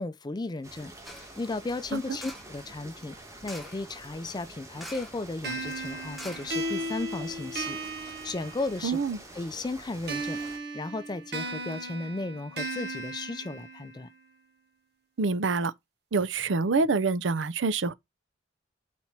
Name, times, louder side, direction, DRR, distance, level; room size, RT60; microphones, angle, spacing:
voice 1, 0.0-3.2 3.4-9.0 9.3-10.4 10.7-14.1, left 2 dB, 20° left, 0.4 m, -35 dB
sound 1, 0.6-10.6, right 1 dB, 15° right, 1.6 m, -47 dB
sound 2, 1.0-1.4 2.2-2.6 3.4-3.9 4.8-5.3 5.5-5.6 6.1-7.0 7.5-7.6, equal, ahead, 1.1 m, -45 dB
sound 3, 5.4-9.1 10.1-14.1, right 2 dB, 60° right, 1.4 m, -36 dB
voice 2, 8.8-9.2 15.2-15.7 16.1-17.9, right 4 dB, 75° right, 0.6 m, -26 dB
4.6 x 4.2 x 5.7 m
head